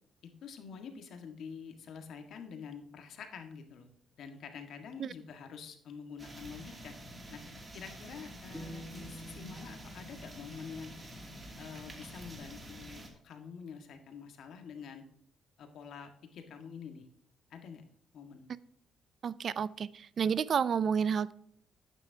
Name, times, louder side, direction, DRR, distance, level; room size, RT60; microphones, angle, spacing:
voice 1, 0.2-3.9 4.2-6.9 7.3-7.4 7.7-10.9 11.6-15.0 15.6-17.1 17.5-17.8 18.1-18.5, left 6 dB, 70° left, 6 dB, 1.7 m, -47 dB
sound 1, 6.2-13.1, right 1 dB, 25° right, 2.7 m, -48 dB
sound 2, 8.5-11.7, equal, 10° left, 0.9 m, -50 dB
voice 2, 19.2-21.3, right 7 dB, 55° right, 19 dB, 0.4 m, -30 dB
11.5 x 9.1 x 2.8 m, 0.66 s
cardioid pair, 90°, 0 cm